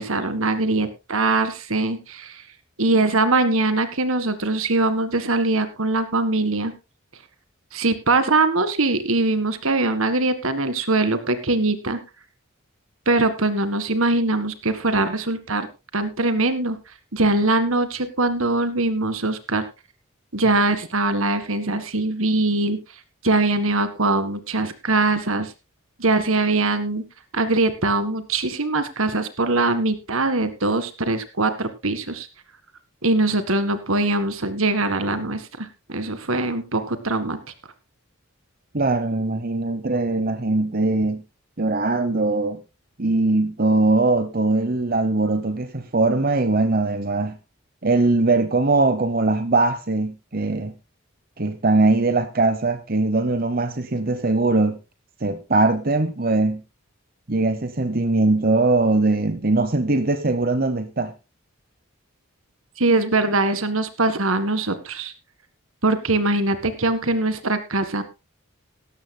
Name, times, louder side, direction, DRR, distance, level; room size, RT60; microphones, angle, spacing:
voice 1, 0.0-2.4 2.8-6.7 7.7-12.0 13.0-15.7 15.9-16.8 17.1-19.7 20.3-22.8 23.2-25.5 26.0-27.0 27.3-32.3 33.0-37.4 62.8-65.1 65.8-68.0, right 2 dB, 75° right, 1.8 m, -22 dB
voice 2, 38.7-41.2 41.6-42.6 43.0-47.4 47.8-50.7 51.4-54.8 55.2-56.6 57.3-61.1, right 2 dB, 45° right, 0.9 m, -21 dB
17.5 x 13.5 x 2.2 m
head